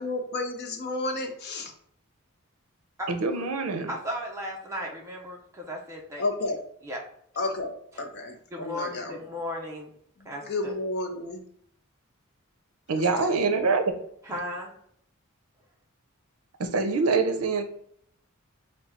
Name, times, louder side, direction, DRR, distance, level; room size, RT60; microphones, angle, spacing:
voice 1, 0.0-1.7 6.2-6.6 7.4-9.1 10.5-11.4 12.9-13.4, left 2 dB, 50° left, 3 dB, 0.6 m, -32 dB
voice 2, 3.1-3.9 12.9-13.8 16.6-17.6, right 4 dB, 70° right, 7 dB, 0.6 m, -25 dB
voice 3, 3.9-6.2 6.8-7.0 8.5-9.9 10.2-10.8 14.2-14.7, equal, 15° right, -2 dB, 0.6 m, -35 dB
3.6 x 2.3 x 4.1 m, 0.67 s
head